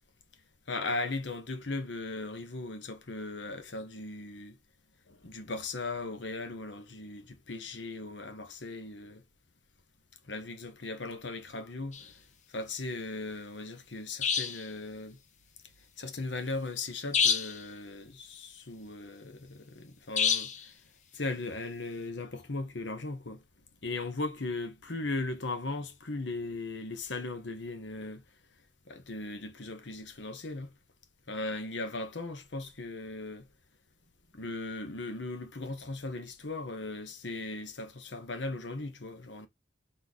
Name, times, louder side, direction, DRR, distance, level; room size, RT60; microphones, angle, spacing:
voice 1, 0.7-4.6 5.1-9.2 10.3-12.1 12.5-15.2 16.0-20.5 21.1-23.4 23.8-28.2 28.9-30.7 31.3-33.5 34.3-39.5, left 2 dB, 75° left, 1.1 m, -38 dB
sound 1, 11.9-12.1 14.2-14.7 17.1-17.6 20.2-20.7, left 6 dB, 40° left, 0.6 m, -27 dB
3.9 x 3.3 x 4.0 m
head